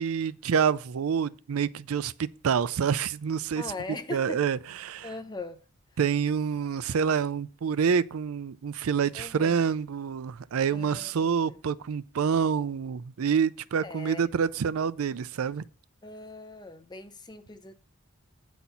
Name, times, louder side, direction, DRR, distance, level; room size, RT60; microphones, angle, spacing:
voice 1, 0.0-3.6 4.1-5.1 6.0-15.7, right 7 dB, 80° right, 0.4 m, -27 dB
voice 2, 3.6-4.4 5.0-5.6 9.1-9.5 10.7-11.6 13.8-14.3 16.0-17.7, left 3 dB, 20° left, 0.7 m, -40 dB
9.1 x 4.2 x 7.0 m
head